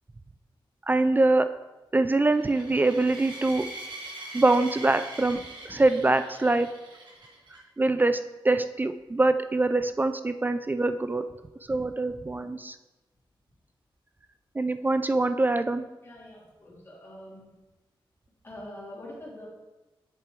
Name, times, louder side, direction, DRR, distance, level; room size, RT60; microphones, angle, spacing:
voice 1, 0.9-1.5 1.9-3.7 4.3-6.7 7.8-8.2 8.4-11.2 11.7-12.8 14.6-15.8, right 2 dB, 20° right, 10 dB, 0.3 m, -24 dB
sound 1, 2.3-7.6, right 2 dB, 60° right, 1.9 m, -43 dB
voice 2, 16.0-17.5 18.4-19.5, left 1 dB, 25° left, -5 dB, 3.1 m, -44 dB
7.6 x 6.6 x 4.6 m, 1.1 s
wide cardioid pair, 120°, 9 cm